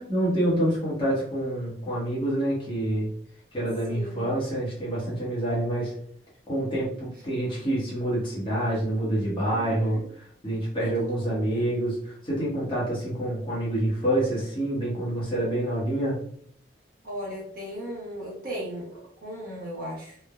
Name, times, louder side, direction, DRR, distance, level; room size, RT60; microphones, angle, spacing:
voice 1, 0.0-3.1 3.5-5.9 6.5-10.0 10.4-16.2, right 1 dB, 25° left, -7 dB, 0.9 m, -27 dB
voice 2, 3.9-4.3 9.4-10.1 10.7-11.7 17.0-20.2, equal, 50° right, -4 dB, 0.8 m, -37 dB
3.2 x 2.0 x 2.3 m, 0.62 s
head